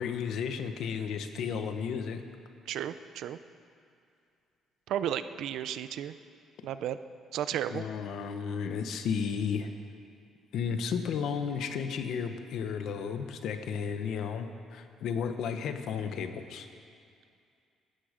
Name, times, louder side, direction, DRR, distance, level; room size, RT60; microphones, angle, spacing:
voice 1, 0.0-2.2 7.7-9.7 10.5-16.7, left 6 dB, 60° left, 8 dB, 1.1 m, -33 dB
voice 2, 2.7-3.4 4.9-6.1 6.6-7.0 7.3-7.8, right 10 dB, 65° right, 12 dB, 0.6 m, -33 dB
18.0 x 13.0 x 5.1 m, 2.4 s
cardioid pair, 170°, 0 cm